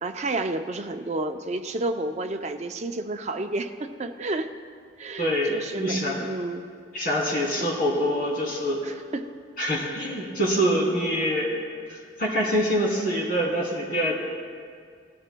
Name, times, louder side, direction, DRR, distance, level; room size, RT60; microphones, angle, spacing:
voice 1, 0.0-4.5 5.0-6.7 7.3-7.7 8.8-9.3, right 2 dB, 35° right, 6 dB, 0.5 m, -31 dB
voice 2, 5.2-6.2 6.9-8.8 9.6-11.6 11.9-14.1, equal, 50° left, -3 dB, 2.7 m, -25 dB
18.5 x 13.5 x 2.2 m, 2.1 s
head